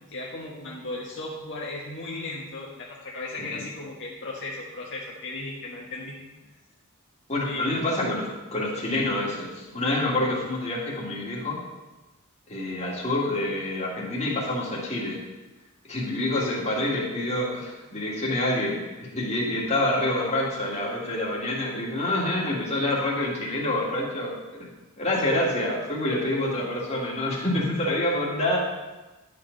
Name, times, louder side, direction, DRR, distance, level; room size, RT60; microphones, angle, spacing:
voice 1, 0.1-6.2 7.4-7.7 25.1-25.2, left 2 dB, 55° left, -5 dB, 1.5 m, -36 dB
voice 2, 7.3-11.6 12.5-15.2 15.9-24.3 24.6-24.7 25.0-28.6, left 1 dB, 30° left, -4 dB, 2.2 m, -27 dB
11.0 x 7.3 x 4.0 m, 1.1 s
head